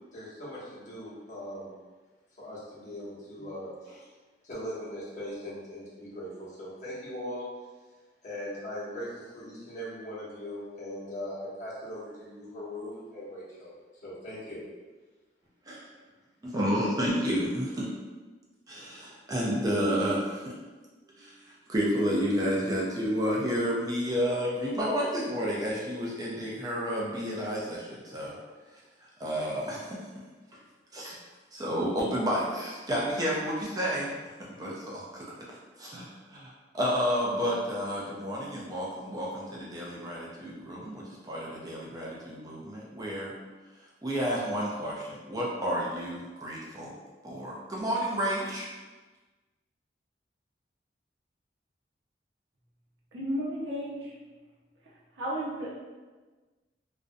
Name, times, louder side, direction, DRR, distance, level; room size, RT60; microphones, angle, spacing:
voice 1, 0.1-1.7 2.4-4.1 4.4-7.5 8.2-13.7 14.0-14.6, left 1 dB, 45° left, -9 dB, 0.9 m, -40 dB
voice 2, 16.4-17.9 18.7-20.5 21.2-28.4 29.2-30.0 30.5-30.6 30.9-31.2 31.5-34.1 34.4-35.3 35.8-43.3 44.0-46.9 47.2-48.7, equal, 20° right, -4 dB, 0.3 m, -31 dB
voice 3, 53.1-54.1 55.2-55.8, equal, 85° right, -5 dB, 0.6 m, -33 dB
2.4 x 2.0 x 2.5 m, 1.3 s
head